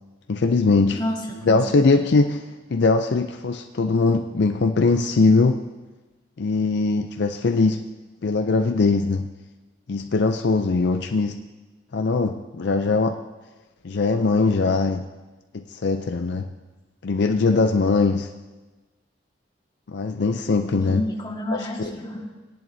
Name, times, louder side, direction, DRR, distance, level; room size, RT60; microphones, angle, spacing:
voice 1, 0.3-1.0 1.4-2.4 2.7-5.6 6.4-7.8 8.2-9.3 9.9-11.4 11.9-13.2 13.8-15.0 15.5-16.5 17.0-18.3 19.9-21.0 21.5-21.9, left 3 dB, 60° left, 6 dB, 0.5 m, -21 dB
voice 2, 1.0-1.6 1.9-2.0 6.8-7.2 20.8-22.3, left 1 dB, 25° left, -1 dB, 1.7 m, -30 dB
18.5 x 10.5 x 2.7 m, 1.2 s
head